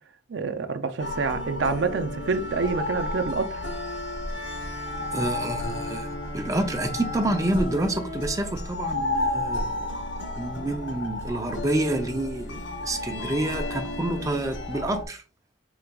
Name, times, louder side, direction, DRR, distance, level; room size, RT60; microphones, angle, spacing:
voice 1, 0.3-3.6, right 4 dB, 70° right, 0.5 m, -27 dB
sound 1, 1.0-15.1, left 1 dB, 70° left, 0.8 m, -32 dB
Bowed string instrument, 4.4-9.3, left 2 dB, 25° left, 0.9 m, -42 dB
voice 2, 5.1-6.1 6.3-9.9 10.4-15.2, right 1 dB, 20° right, 0.5 m, -28 dB
4.7 x 3.9 x 2.3 m
head